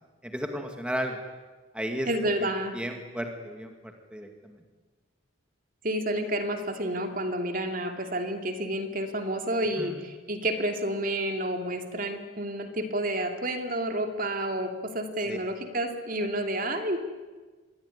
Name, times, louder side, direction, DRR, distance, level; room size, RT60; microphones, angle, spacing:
voice 1, 0.2-1.2 1.7-2.1 2.4-2.5 2.7-4.6 9.8-10.0 15.3-15.4, equal, 5° right, 4 dB, 2.3 m, -34 dB
voice 2, 2.1-2.8 5.8-17.0, right 1 dB, 40° right, 6 dB, 2.7 m, -30 dB
26.5 x 22.0 x 9.9 m, 1.3 s
head